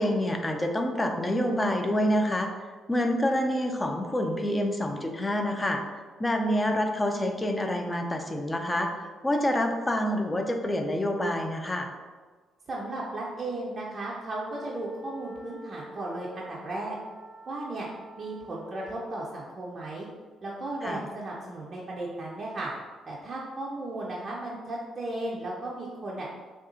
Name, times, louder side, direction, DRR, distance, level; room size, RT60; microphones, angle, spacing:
voice 1, 0.0-2.5 2.9-5.8 6.2-11.9 20.8-21.0, left 1 dB, 20° left, 4 dB, 0.4 m, -27 dB
voice 2, 12.7-17.0 17.5-17.9 18.2-20.1 20.4-22.7 23.1-26.3, right 2 dB, 45° right, -4 dB, 0.5 m, -35 dB
sound 1, 14.3-19.2, right 1 dB, 40° left, 1.4 m, -46 dB
3.6 x 2.3 x 2.5 m, 1.4 s
hypercardioid pair, 45°, 0 cm